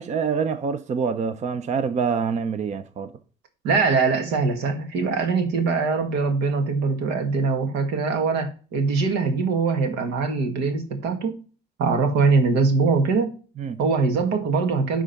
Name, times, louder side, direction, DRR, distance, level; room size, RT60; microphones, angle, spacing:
voice 1, 0.0-3.1 13.6-13.8, right 6 dB, 45° right, 0.7 m, -26 dB
voice 2, 3.6-11.4 11.8-13.3 13.8-15.0, right 4 dB, 90° right, 1.8 m, -22 dB
10.5 x 3.7 x 5.8 m
cardioid pair, 110°, 17 cm